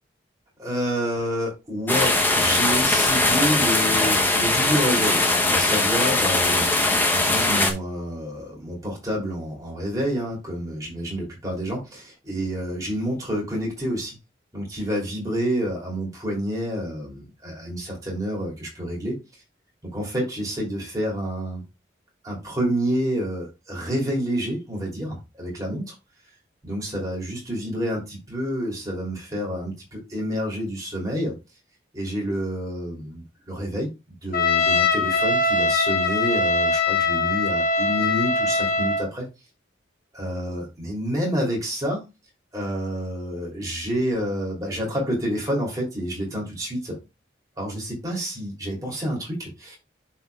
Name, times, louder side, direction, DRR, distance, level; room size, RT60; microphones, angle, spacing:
voice 1, 0.6-6.7 7.1-14.2 14.5-19.2 19.9-21.6 22.2-25.9 26.6-31.3 31.9-33.9 34.2-39.3 40.1-42.1 42.5-47.0 47.6-49.8, equal, 20° right, 3.0 m, -28 dB
sound 1, 1.9-7.7, left 2 dB, 10° left, 0.8 m, -20 dB
Trumpet, 34.3-39.1, left 3 dB, 50° left, 0.9 m, -22 dB
11.5 x 4.4 x 2.3 m
head